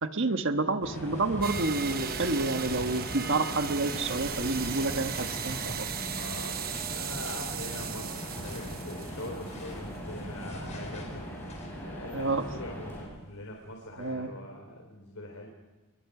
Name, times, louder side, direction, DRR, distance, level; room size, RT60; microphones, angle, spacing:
voice 1, 0.0-5.9 12.1-12.4 14.0-14.3, right 3 dB, 60° right, 7 dB, 1.3 m, -29 dB
sound 1, 0.8-12.1 12.7-14.1, left 1 dB, 35° left, 4.9 m, -45 dB
sound 2, 0.8-13.1, equal, 10° left, 7.9 m, -40 dB
sound 3, 1.4-9.7, right 8 dB, 45° right, 1.0 m, -37 dB
voice 2, 6.1-11.2 11.8-15.5, left 1 dB, 85° left, 1 dB, 3.7 m, -43 dB
30.0 x 22.0 x 4.9 m, 1.2 s
head